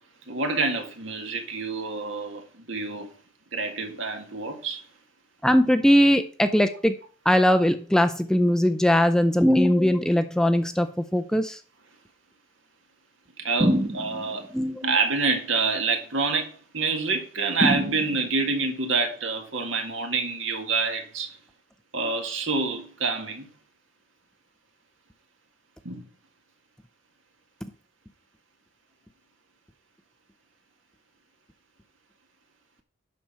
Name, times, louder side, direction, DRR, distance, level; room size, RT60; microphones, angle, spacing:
voice 1, 0.3-3.1 3.5-4.8 13.4-14.5 14.8-21.3 21.9-23.5 25.9-26.1, right 4 dB, 70° right, 1.9 m, -27 dB
voice 2, 5.4-7.0 7.3-11.6 14.5-14.8, equal, 5° left, 0.4 m, -20 dB
sound 1, 13.6-14.5 17.6-18.5, equal, 30° right, 1.0 m, -25 dB
11.5 x 4.3 x 5.8 m
head